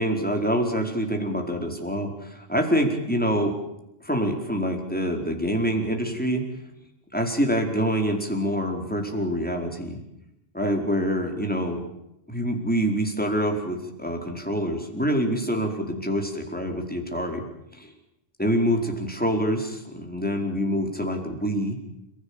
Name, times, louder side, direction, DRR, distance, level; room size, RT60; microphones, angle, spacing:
voice 1, 0.0-3.5 4.0-6.4 7.1-10.0 10.5-11.8 12.3-17.4 17.7-17.9 18.4-21.8, equal, 10° left, 3 dB, 4.6 m, -26 dB
29.5 x 16.5 x 8.9 m, 0.86 s
omnidirectional pair, 1.1 m